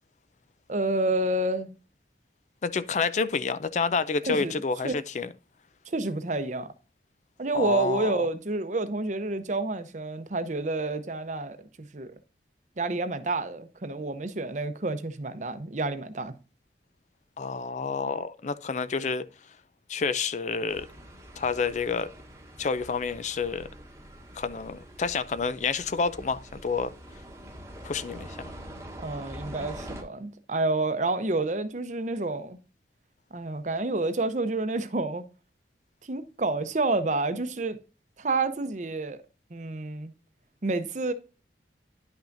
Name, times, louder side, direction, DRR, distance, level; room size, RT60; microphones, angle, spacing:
voice 1, 0.7-1.7 4.3-4.5 4.8-4.9 5.9-6.7 7.4-12.1 12.8-16.3 29.0-32.6 33.3-35.2 36.0-37.8 38.2-39.2 39.5-40.1 40.6-41.1, right 2 dB, 40° right, 0.7 m, -29 dB
voice 2, 2.6-5.3 7.5-8.1 17.4-19.3 19.9-20.9 21.4-22.1 22.6-23.7 24.4-26.9 27.8-28.5, left 5 dB, 40° left, 0.4 m, -29 dB
sound 1, 20.7-30.0, equal, 15° right, 1.1 m, -44 dB
10.0 x 5.8 x 2.6 m
head